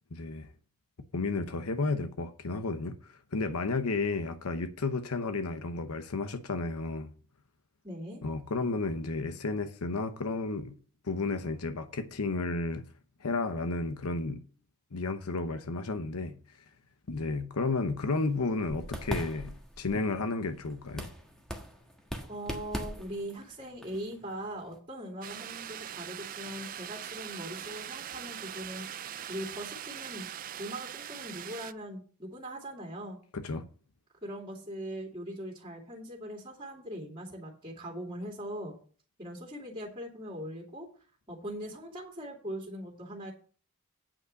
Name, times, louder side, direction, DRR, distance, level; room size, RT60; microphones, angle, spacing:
voice 1, 0.1-0.5 1.1-7.1 8.2-10.8 11.0-12.8 13.2-14.4 14.9-16.4 17.1-21.1 33.3-33.6, left 3 dB, 80° left, 0.9 m, -32 dB
voice 2, 7.8-8.2 22.3-30.3 30.6-33.2 34.2-38.8 39.2-40.9 41.3-43.3, equal, 25° right, 2.5 m, -41 dB
sound 1, 18.1-24.8, equal, 5° left, 1.4 m, -41 dB
sound 2, 25.2-31.7, right 10 dB, 40° right, 0.4 m, -41 dB
8.8 x 5.5 x 6.5 m
head